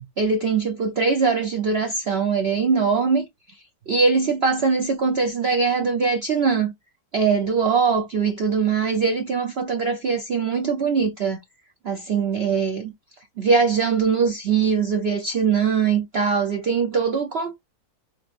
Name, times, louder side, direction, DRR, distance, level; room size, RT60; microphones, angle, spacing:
voice 1, 0.2-3.3 3.9-6.7 7.1-11.4 11.8-12.9 13.4-17.5, right 5 dB, 60° right, 0.6 m, -22 dB
5.1 x 3.0 x 2.5 m
omnidirectional pair, 1.8 m